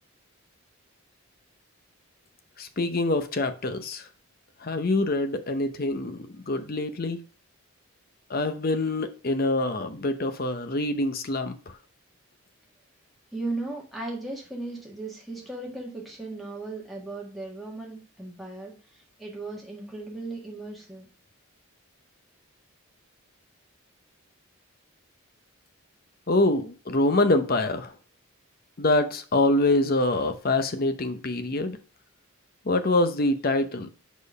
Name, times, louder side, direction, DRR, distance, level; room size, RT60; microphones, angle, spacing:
voice 1, 2.6-4.0 4.6-7.2 8.3-11.8 26.3-27.9 28.8-31.8 32.6-33.9, left 2 dB, 40° left, 0.7 m, -25 dB
voice 2, 13.3-18.7 19.2-21.1, right 2 dB, ahead, 1.6 m, -36 dB
5.2 x 4.3 x 5.4 m
head